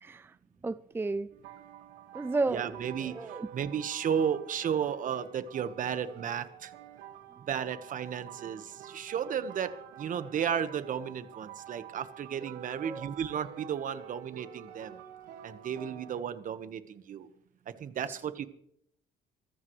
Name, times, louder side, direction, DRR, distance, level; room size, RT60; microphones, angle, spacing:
voice 1, 0.0-0.3 0.6-1.3 2.1-3.5 12.8-13.1 18.1-18.2, right 3 dB, 15° right, 0.5 m, -33 dB
sound 1, 1.3-16.2, right 10 dB, 85° right, 1.9 m, -48 dB
voice 2, 2.5-3.2 3.5-6.7 7.5-9.7 10.0-15.0 15.4-17.3 17.8-18.4, right 8 dB, 50° right, 1.4 m, -33 dB
24.0 x 14.5 x 3.3 m
cardioid pair, 110°, 17 cm